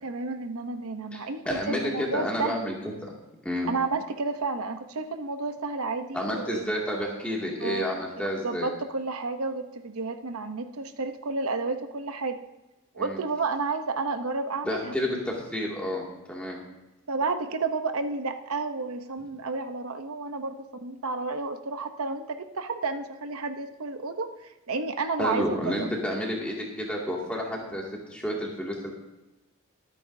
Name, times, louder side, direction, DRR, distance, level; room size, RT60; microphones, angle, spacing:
voice 1, 0.0-2.7 3.7-6.6 7.6-12.4 12.9-14.9 17.1-25.9, right 3 dB, 90° right, 8 dB, 0.8 m, -31 dB
voice 2, 1.5-2.7 3.0-3.1 3.4-3.7 6.1-8.7 13.0-13.2 14.6-16.6 25.2-27.8 28.1-28.9, left 1 dB, 5° left, -3 dB, 2.2 m, -30 dB
23.5 x 9.1 x 2.7 m, 1.0 s
head